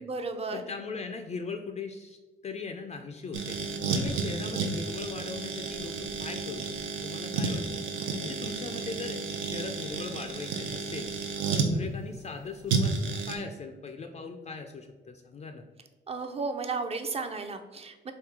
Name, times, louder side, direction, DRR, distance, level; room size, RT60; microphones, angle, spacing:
voice 1, 0.0-0.6 16.1-18.1, right 4 dB, 30° right, 7 dB, 0.5 m, -34 dB
voice 2, 0.5-2.2 2.4-7.8 8.2-11.1 11.5-12.9 13.3-15.6, left 4 dB, 35° left, 5 dB, 0.4 m, -39 dB
sound 1, 3.3-11.7 12.7-13.4, right 4 dB, 90° right, 0.6 m, -31 dB
3.6 x 2.7 x 4.5 m, 1.2 s
cardioid pair, 90°, 20 cm